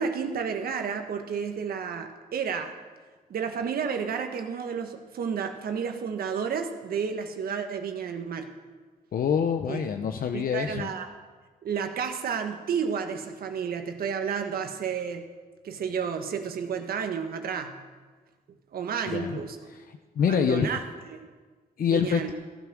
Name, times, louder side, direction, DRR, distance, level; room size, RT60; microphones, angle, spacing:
voice 1, 0.0-2.7 3.3-8.5 9.7-9.8 10.3-11.1 11.6-15.2 15.6-17.8 18.7-19.6 20.2-20.8 21.1-21.3 21.9-22.3, right 6 dB, 80° right, 5 dB, 1.5 m, -31 dB
voice 2, 9.1-10.9 19.1-19.4 19.9-20.7 21.8-22.3, left 7 dB, 70° left, 6 dB, 0.8 m, -26 dB
16.0 x 11.0 x 6.2 m, 1.4 s
cardioid pair, 80°, 15 cm